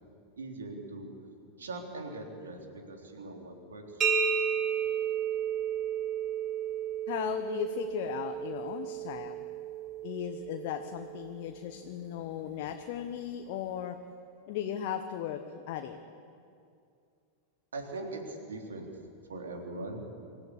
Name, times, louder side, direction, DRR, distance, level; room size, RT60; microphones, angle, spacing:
voice 1, 0.4-1.1 1.6-4.2 17.7-18.9 19.3-20.0, right 2 dB, 70° right, 2 dB, 3.5 m, -41 dB
sound 1, 4.0-11.6, right 7 dB, 25° right, 2.5 m, -33 dB
voice 2, 7.1-9.5 10.0-14.0 14.5-16.0, left 10 dB, 50° left, 6 dB, 1.2 m, -36 dB
26.0 x 14.5 x 8.3 m, 2.4 s
figure-of-eight pair, 90°, 0 cm